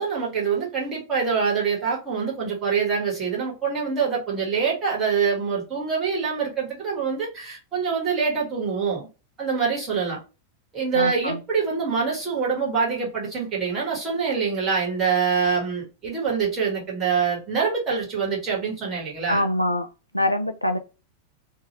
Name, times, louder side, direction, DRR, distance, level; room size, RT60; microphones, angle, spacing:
voice 1, 0.0-9.1 9.4-10.2 10.7-19.4, right 5 dB, 25° right, 1.6 m, -25 dB
voice 2, 10.9-11.4 19.3-19.9 20.1-20.8, left 1 dB, 85° left, 0.3 m, -24 dB
2.7 x 2.3 x 3.0 m
figure-of-eight pair, 90°, 0 cm